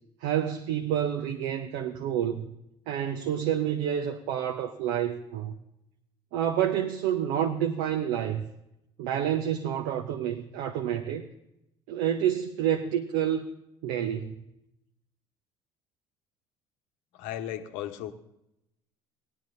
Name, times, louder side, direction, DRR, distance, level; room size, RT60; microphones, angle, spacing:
voice 1, 0.2-2.5 2.9-5.5 6.3-8.4 9.0-11.2 11.9-13.5 13.8-14.3, right 10 dB, 65° right, 0.8 m, -28 dB
voice 2, 17.1-18.1, left 11 dB, 60° left, 1.0 m, -35 dB
18.5 x 11.0 x 2.6 m
figure-of-eight pair, 55°, 15 cm